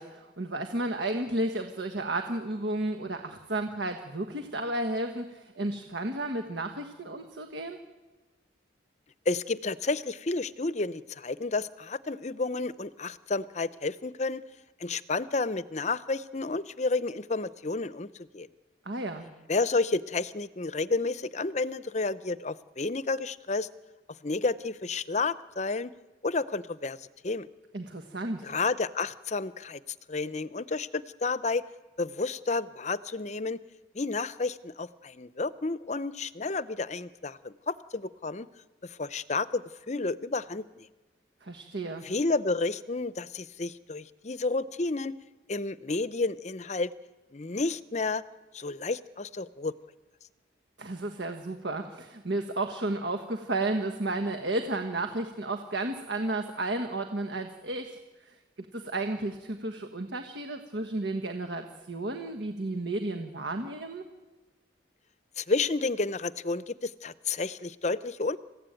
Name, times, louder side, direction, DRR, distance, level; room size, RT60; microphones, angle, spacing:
voice 1, 0.0-7.8 18.8-19.3 27.7-28.5 41.4-42.1 50.8-64.1, right 2 dB, 70° right, 6 dB, 1.5 m, -33 dB
voice 2, 9.3-14.4 14.8-18.5 19.5-23.7 24.2-25.9 26.2-27.5 28.4-29.8 30.1-31.6 32.0-33.6 33.9-38.5 38.8-40.9 42.0-45.2 45.5-46.9 47.3-48.2 48.5-49.7 65.4-68.4, left 3 dB, 35° left, 15 dB, 0.7 m, -31 dB
28.0 x 15.5 x 9.1 m, 1.2 s
head